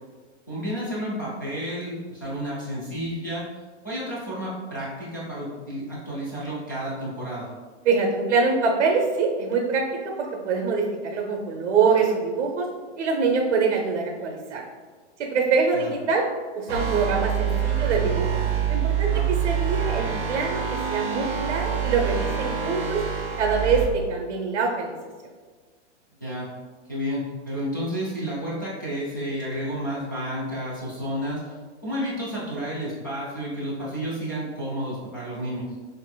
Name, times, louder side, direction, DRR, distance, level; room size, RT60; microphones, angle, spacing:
voice 1, 0.5-3.5 3.8-7.5 15.7-15.9 19.1-19.3 26.2-26.5 26.9-31.4 31.8-35.6, equal, 20° left, -10 dB, 0.3 m, -31 dB
voice 2, 7.8-9.8 10.2-12.7 13.0-14.6 15.2-16.2 16.5-18.3 18.7-23.0 23.4-25.0, right 4 dB, 70° right, 1 dB, 0.7 m, -24 dB
sound 1, 16.7-23.8, right 8 dB, 25° right, 1.2 m, -26 dB
6.5 x 2.5 x 2.2 m, 1.5 s
hypercardioid pair, 180°, 36 cm